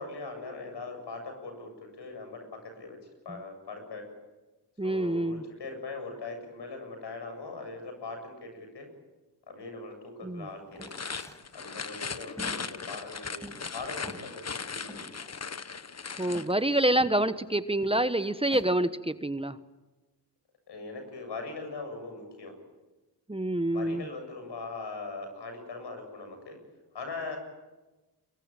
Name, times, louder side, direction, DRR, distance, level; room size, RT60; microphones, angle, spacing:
voice 1, 0.0-3.0 3.2-4.1 4.8-8.9 9.5-10.9 11.5-15.0 20.7-22.6 23.7-26.6 26.9-27.4, left 3 dB, 80° left, 5 dB, 7.6 m, -41 dB
voice 2, 4.8-5.4 10.2-10.5 16.2-19.6 23.3-24.1, right 1 dB, 15° right, 12 dB, 1.2 m, -27 dB
sound 1, 10.7-16.5, left 5 dB, 40° left, 1.3 m, -38 dB
sound 2, 10.7-11.4 11.9-13.8 14.0-14.3 14.9-15.5 15.8-15.9 16.2-17.2 17.8-18.7, equal, 5° left, 6.4 m, -46 dB
23.5 x 21.5 x 9.0 m, 1.1 s
cardioid pair, 50°, 41 cm